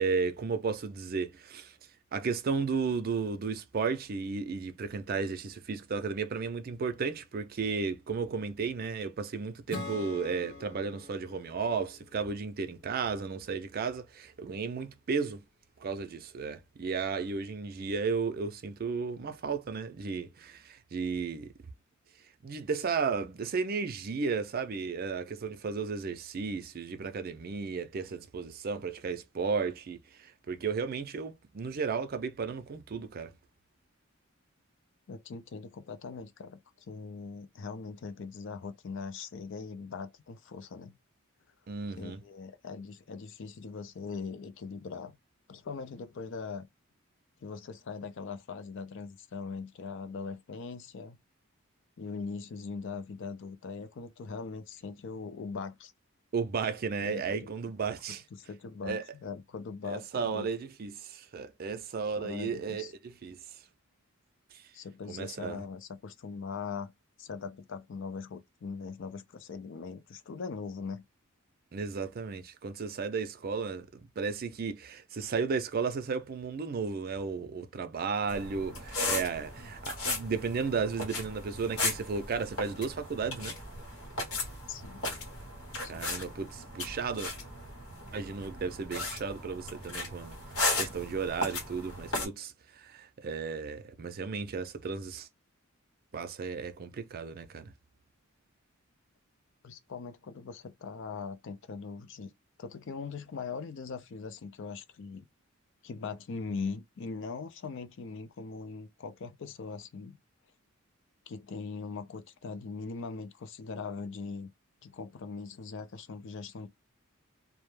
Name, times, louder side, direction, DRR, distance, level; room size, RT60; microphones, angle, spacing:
voice 1, 0.0-1.7 2.1-15.4 15.8-21.5 22.4-33.3 41.7-42.2 56.3-58.2 58.8-59.1 59.8-63.4 65.1-65.6 71.7-83.6 85.9-87.3 88.1-90.4 90.8-95.3 96.1-97.7, right 5 dB, 45° right, 0.4 m, -34 dB
Acoustic guitar / Strum, 9.7-13.2, left 3 dB, 25° left, 1.0 m, -45 dB
voice 2, 35.1-36.6 36.9-41.0 42.0-45.2 45.5-46.7 47.4-51.2 52.0-55.9 57.0-57.4 58.1-60.5 62.2-62.9 64.7-66.9 67.2-71.0 84.7-85.0 85.8-86.1 99.6-102.3 102.6-105.3 105.8-110.2 111.3-114.5 114.8-116.7, left 5 dB, 60° left, 0.4 m, -41 dB
sound 1, 78.3-92.3, left 2 dB, 85° left, 1.0 m, -36 dB
2.2 x 2.0 x 3.1 m
head